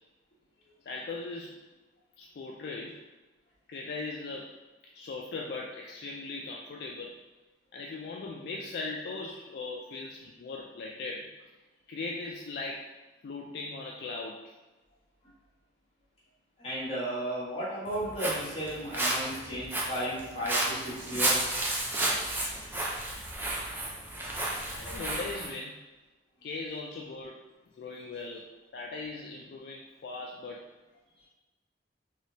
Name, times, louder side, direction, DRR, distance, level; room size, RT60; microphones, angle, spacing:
voice 1, 0.9-1.7 2.2-3.0 3.7-4.5 4.9-7.1 7.7-11.3 11.9-12.9 13.2-14.5 24.7-25.8 26.4-27.4 27.8-30.7, left 3 dB, 60° left, -1 dB, 0.3 m, -39 dB
voice 2, 16.6-21.5, equal, 30° left, -9 dB, 1.3 m, -34 dB
Walk footsteps, 17.9-25.5, right 1 dB, 10° right, 0.4 m, -32 dB
3.3 x 2.9 x 2.8 m, 1.1 s
head